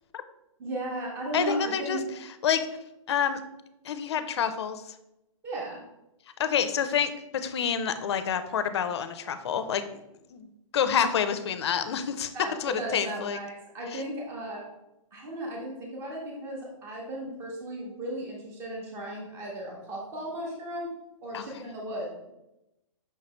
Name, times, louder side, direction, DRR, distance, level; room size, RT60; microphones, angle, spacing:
voice 1, 0.6-2.0 5.4-5.8 12.3-14.6 15.1-20.9 21.2-22.3, right 1 dB, 15° right, -2 dB, 0.7 m, -35 dB
voice 2, 1.3-2.0 2.4-2.7 3.1-3.4 3.8-4.8 6.4-9.9 10.3-12.3 12.6-13.4 13.9-14.0 21.3-21.5, left 8 dB, 50° left, 11 dB, 0.4 m, -28 dB
5.5 x 3.1 x 2.9 m, 0.90 s
hypercardioid pair, 160°, 18 cm